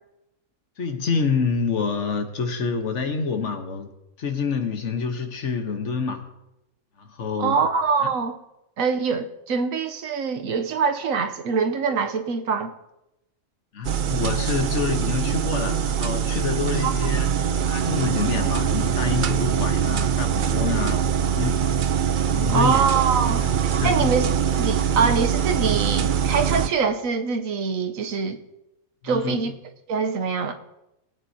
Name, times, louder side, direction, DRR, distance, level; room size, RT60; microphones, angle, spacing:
voice 1, 0.8-3.9 4.2-6.2 7.0-7.6 8.0-8.1 13.7-17.4 17.7-21.6 22.2-22.8 23.3-23.5 23.8-24.1 29.0-29.4, left 5 dB, 60° left, 5 dB, 1.4 m, -27 dB
voice 2, 7.4-8.4 8.8-12.7 16.8-17.0 20.9-21.0 22.5-23.4 23.8-24.3 24.6-28.4 29.0-29.5 29.9-30.5, right 5 dB, 75° right, 7 dB, 1.2 m, -24 dB
sound 1, 13.8-26.7, right 8 dB, 60° right, 0.5 m, -23 dB
20.5 x 9.2 x 2.8 m, 0.90 s
omnidirectional pair, 1.5 m